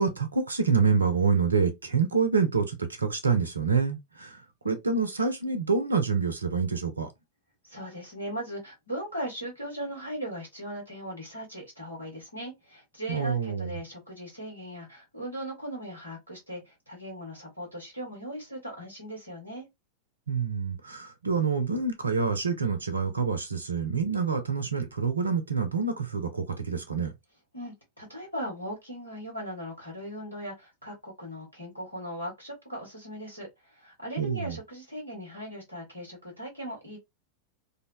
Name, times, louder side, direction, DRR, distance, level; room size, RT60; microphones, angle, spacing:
voice 1, 0.0-7.1 13.1-13.8 20.3-27.1 34.2-34.6, right 5 dB, 75° right, 0.5 m, -27 dB
voice 2, 7.6-19.7 27.5-37.0, equal, 85° left, 1.3 m, -38 dB
2.6 x 2.1 x 2.3 m
figure-of-eight pair, 90°, 0 cm